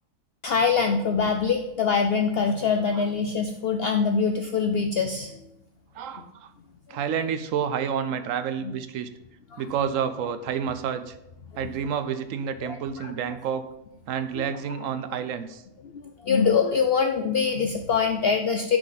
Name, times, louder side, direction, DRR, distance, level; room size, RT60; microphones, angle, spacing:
voice 1, 0.4-5.3 9.5-9.6 12.6-12.7 13.0-13.1 15.9-18.8, left 5 dB, 60° left, 5 dB, 0.6 m, -24 dB
voice 2, 5.9-6.5 6.9-9.1 9.6-11.2 11.5-13.6 14.1-15.6, right 7 dB, 70° right, 11 dB, 0.9 m, -29 dB
10.5 x 4.9 x 4.0 m, 0.88 s
omnidirectional pair, 1.4 m